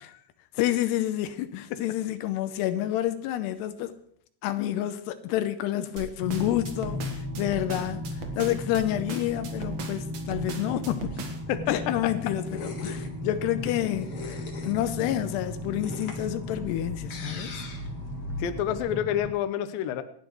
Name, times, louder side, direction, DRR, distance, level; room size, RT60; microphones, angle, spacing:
voice 1, 0.5-4.0 4.4-8.0 8.3-11.3 11.7-17.5, left 13 dB, 90° left, 2.9 m, -29 dB
sound 1, 6.0-11.5, right 5 dB, 55° right, 2.1 m, -39 dB
sound 2, 6.2-19.3, left 1 dB, 15° right, 1.0 m, -36 dB
sound 3, 10.6-18.8, left 2 dB, 55° left, 1.5 m, -41 dB
voice 2, 18.4-20.0, left 10 dB, 70° left, 2.5 m, -28 dB
27.0 x 10.0 x 3.2 m
omnidirectional pair, 4.7 m